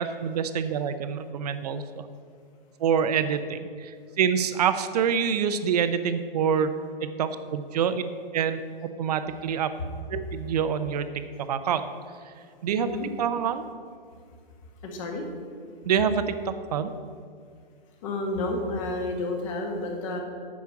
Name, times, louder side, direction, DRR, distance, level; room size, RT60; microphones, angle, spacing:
voice 1, 0.0-2.1 2.8-8.1 8.3-8.6 9.0-9.8 10.1-11.1 11.4-11.9 12.2-12.3 12.6-12.9 13.2-13.6 15.9-16.9, right 7 dB, 45° right, 11 dB, 0.7 m, -26 dB
voice 2, 14.8-15.2 18.0-20.2, left 2 dB, 35° left, 2 dB, 1.6 m, -30 dB
8.5 x 6.2 x 7.1 m, 2.1 s
hypercardioid pair, 150°, 29 cm